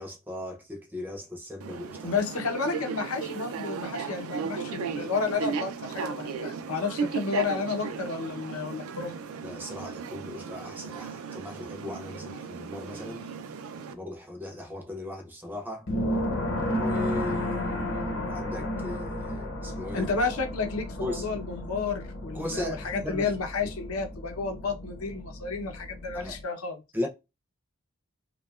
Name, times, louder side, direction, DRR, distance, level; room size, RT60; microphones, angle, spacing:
voice 1, 0.0-2.1 9.4-13.3 13.9-15.9 16.8-20.1 21.0-21.3 22.3-23.3 26.1-26.4 26.9-27.1, left 1 dB, 10° right, 0.5 m, -37 dB
sound 1, 1.6-13.9, right 5 dB, 80° right, 0.4 m, -36 dB
voice 2, 2.0-9.2 19.9-26.8, left 4 dB, 90° left, 0.7 m, -31 dB
sound 2, 15.9-26.4, left 1 dB, 60° left, 0.9 m, -33 dB
2.7 x 2.2 x 2.3 m
head